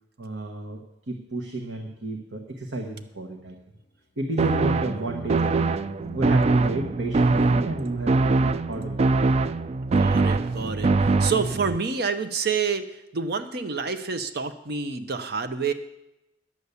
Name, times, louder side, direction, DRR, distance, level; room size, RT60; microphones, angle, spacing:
voice 1, 0.2-3.6 4.2-5.6 6.1-9.0, right 1 dB, 80° right, 3 dB, 1.2 m, -32 dB
sound 1, 4.4-11.8, right 3 dB, 35° right, 0.3 m, -23 dB
sound 2, 5.4-7.7 9.9-11.2, left 2 dB, 30° left, 0.6 m, -46 dB
voice 2, 9.9-15.7, right 5 dB, 60° right, 9 dB, 0.7 m, -28 dB
11.0 x 7.0 x 8.2 m, 0.91 s
head